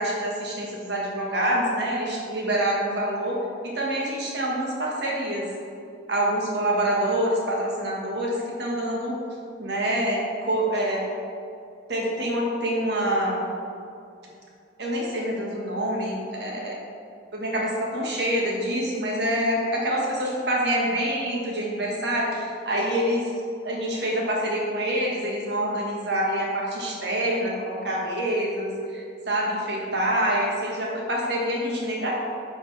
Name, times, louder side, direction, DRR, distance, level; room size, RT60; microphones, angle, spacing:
voice 1, 0.0-3.4 3.6-5.5 6.1-9.2 9.6-11.1 11.9-13.4 14.8-16.8 17.3-23.3 23.6-32.1, right 1 dB, 60° right, -2 dB, 1.4 m, -26 dB
7.4 x 4.3 x 4.0 m, 2.5 s
head